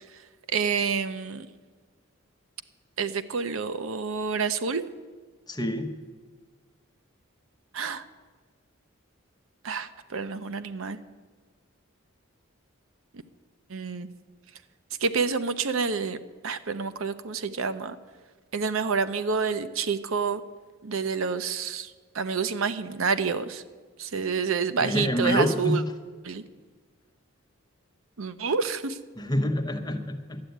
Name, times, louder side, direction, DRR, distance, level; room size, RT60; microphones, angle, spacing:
voice 1, 0.5-1.5 3.0-4.8 7.7-8.0 9.6-11.0 13.7-14.1 15.0-18.0 18.5-20.4 20.8-21.9 22.1-23.6 24.0-25.8 26.2-26.4 28.2-29.0, right 5 dB, 75° right, 11 dB, 0.7 m, -28 dB
voice 2, 5.5-5.9 24.8-25.8 29.2-30.4, equal, 20° left, 4 dB, 0.9 m, -26 dB
11.5 x 8.3 x 9.2 m, 1.4 s
head